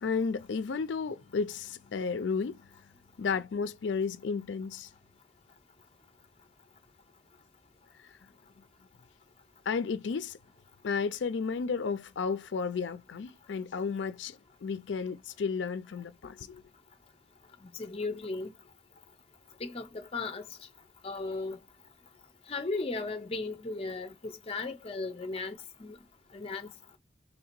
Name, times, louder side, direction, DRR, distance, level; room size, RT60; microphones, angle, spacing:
voice 1, 0.0-2.6 3.2-4.9 8.0-8.2 9.7-10.4 10.8-16.6, left 5 dB, 85° left, 0.4 m, -33 dB
voice 2, 17.8-18.5 19.6-20.4 21.0-21.6 22.5-26.0 26.3-26.7, left 3 dB, 35° left, 0.6 m, -36 dB
3.2 x 2.8 x 4.3 m
head